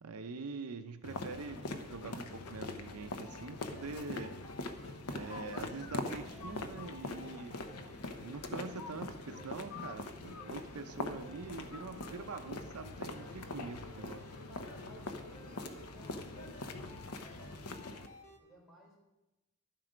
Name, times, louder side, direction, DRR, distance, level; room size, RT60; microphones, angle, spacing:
voice 1, 0.0-4.3 5.1-7.6 8.2-14.2, right 4 dB, 75° right, 7 dB, 0.6 m, -44 dB
sound 1, 1.0-18.1, left 2 dB, 90° left, 0.9 m, -43 dB
sound 2, 3.0-18.4, left 1 dB, 30° left, 1.2 m, -56 dB
voice 2, 13.1-13.8 14.5-16.6 17.5-18.0 18.3-19.0, left 1 dB, ahead, -5 dB, 4.2 m, -58 dB
12.0 x 7.6 x 5.1 m, 1.0 s
head